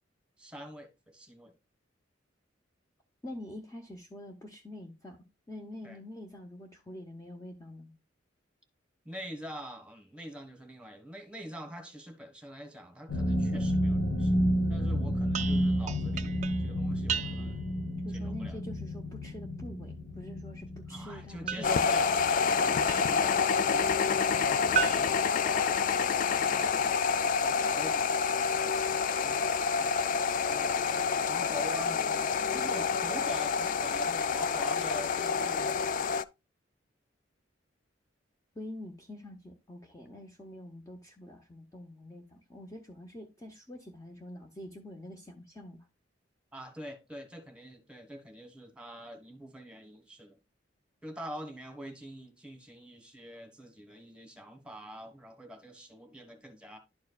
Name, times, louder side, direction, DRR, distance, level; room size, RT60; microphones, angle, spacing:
voice 1, 0.4-1.5 5.8-6.0 9.0-14.3 14.7-17.7 18.1-18.6 20.9-30.9 31.3-32.2 32.5-35.8 46.5-50.4 51.0-56.8, equal, 5° right, 1.4 m, -45 dB
voice 2, 3.2-7.9 18.0-21.8 38.5-45.8, left 1 dB, 20° left, 0.8 m, -46 dB
sound 1, 13.1-23.8 24.1-24.4 24.8-24.9, equal, 65° left, 1.1 m, -31 dB
sound 2, 15.3-17.7 21.5-23.3 24.7-26.2, right 8 dB, 40° right, 0.4 m, -37 dB
sound 3, 21.6-36.2, left 6 dB, 45° left, 0.3 m, -28 dB
11.5 x 4.6 x 2.3 m
head